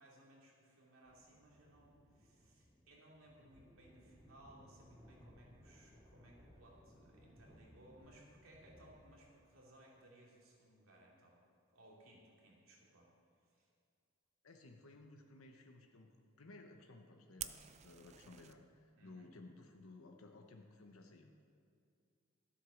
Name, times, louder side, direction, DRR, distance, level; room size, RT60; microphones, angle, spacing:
voice 1, 0.0-11.4 11.7-13.1 13.4-13.7 19.0-19.3, right 1 dB, 80° right, -3 dB, 2.8 m, -63 dB
sound 1, 1.0-9.4, equal, ahead, 3.5 m, -63 dB
voice 2, 14.4-21.4, left 2 dB, 85° left, 3 dB, 0.9 m, -57 dB
Fire, 17.4-18.5, right 10 dB, 30° right, 0.4 m, -48 dB
13.0 x 8.2 x 6.3 m, 2.4 s
head